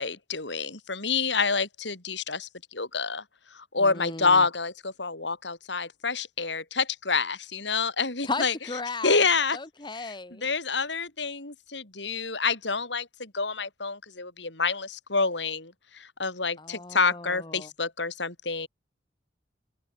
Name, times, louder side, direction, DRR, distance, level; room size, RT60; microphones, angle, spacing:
voice 1, 0.0-3.2 3.5-8.5 9.0-9.6 10.0-10.1 10.4-18.7, left 4 dB, 70° left, 5.1 m, -28 dB
voice 2, 3.8-4.5 8.2-9.2 9.5-10.5 16.6-17.7, left 3 dB, 25° left, 1.6 m, -36 dB
open air
head